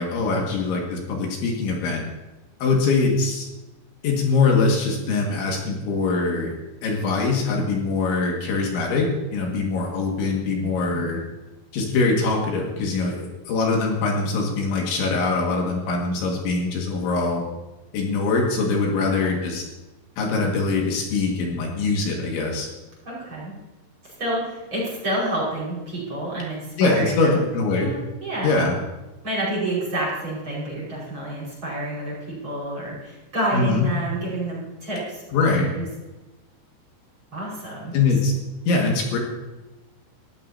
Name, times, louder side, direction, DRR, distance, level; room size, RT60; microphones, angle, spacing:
voice 1, 0.0-2.0 2.6-3.5 4.0-6.5 6.8-11.2 11.7-17.4 17.9-19.6 20.2-22.7 26.8-27.9 28.4-28.7 33.5-33.9 35.3-35.7 37.9-38.3 38.7-39.2, left 3 dB, 70° left, -1 dB, 4.2 m, -23 dB
voice 2, 10.6-11.1 19.0-19.4 23.1-23.5 24.0-27.4 27.7-28.7 29.2-35.9 37.3-38.0, right 1 dB, 25° right, -6 dB, 5.6 m, -29 dB
20.0 x 15.5 x 2.8 m, 1.1 s
omnidirectional pair, 5.7 m